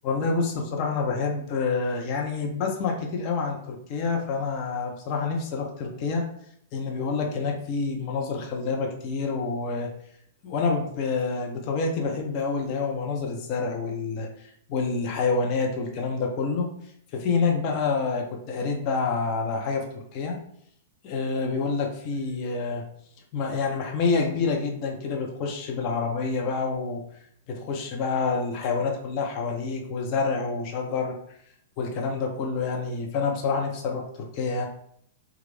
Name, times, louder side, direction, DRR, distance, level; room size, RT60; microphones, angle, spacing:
voice 1, 0.0-6.2 6.7-9.9 10.4-14.3 14.7-16.7 17.1-19.8 20.1-20.4 21.0-22.9 23.3-27.0 27.5-31.1 31.8-34.7, left 4 dB, 35° left, 1 dB, 0.7 m, -27 dB
3.2 x 2.4 x 3.3 m, 0.68 s
figure-of-eight pair, 100°, 0 cm